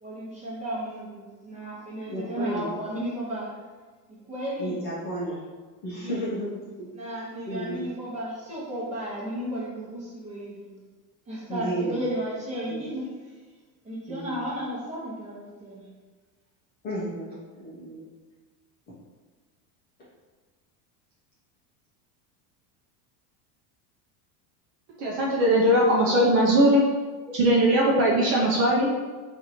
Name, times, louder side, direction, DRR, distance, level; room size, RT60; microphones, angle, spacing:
voice 1, 0.0-3.5 4.1-4.8 5.9-6.2 6.9-10.7 11.3-13.1 13.8-15.9, equal, 15° right, -7 dB, 0.8 m, -34 dB
voice 2, 2.1-2.7 4.6-5.4 5.8-6.9 7.5-7.9 11.5-12.1 12.7-12.8 14.1-14.4 16.8-18.0 18.9-19.0, right 1 dB, 20° left, -9 dB, 0.5 m, -33 dB
voice 3, 25.0-26.8 27.3-29.0, equal, 40° right, -2 dB, 0.5 m, -20 dB
2.9 x 2.6 x 4.1 m, 1.4 s
cardioid pair, 170°, 47 cm